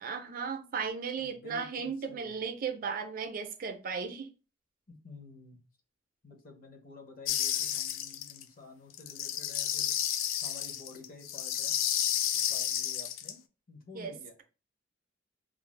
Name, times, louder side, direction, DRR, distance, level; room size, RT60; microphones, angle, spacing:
voice 1, 0.0-4.3 13.9-14.1, right 5 dB, 45° right, 0.4 m, -36 dB
voice 2, 1.2-2.4 4.9-5.6 6.2-9.9 10.4-11.8 12.5-13.4 13.7-14.3, left 3 dB, 50° left, 0.7 m, -51 dB
sound 1, 7.3-8.4 8.9-13.3, left 10 dB, 90° left, 0.3 m, -31 dB
2.5 x 2.3 x 3.1 m
head